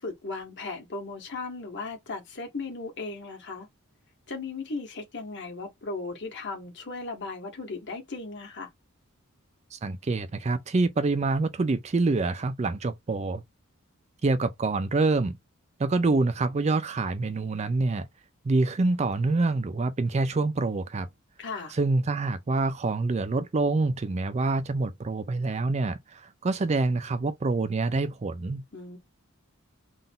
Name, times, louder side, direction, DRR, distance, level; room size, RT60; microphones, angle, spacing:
voice 1, 0.0-3.7 4.3-8.7 21.4-21.8 28.7-29.0, left 3 dB, 55° left, 1.6 m, -36 dB
voice 2, 9.7-13.4 14.2-15.4 15.8-18.1 18.4-21.1 21.7-28.6, right 3 dB, 30° right, 0.4 m, -26 dB
3.8 x 2.6 x 3.6 m
head